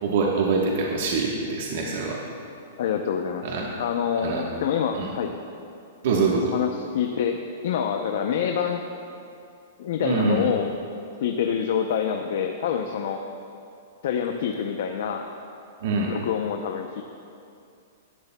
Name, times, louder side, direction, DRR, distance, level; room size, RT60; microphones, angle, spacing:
voice 1, 0.0-2.2 3.4-3.7 4.2-4.4 4.9-5.1 6.0-6.5 10.0-10.5 15.8-16.1, right 4 dB, 50° right, -2 dB, 1.2 m, -24 dB
voice 2, 2.8-3.4 3.8-5.3 6.5-8.8 9.8-10.7 11.2-13.2 14.0-15.2 16.1-17.0, left 8 dB, 55° left, 4 dB, 0.6 m, -26 dB
16.0 x 11.5 x 2.3 m, 2.5 s
hypercardioid pair, 175°, 0 cm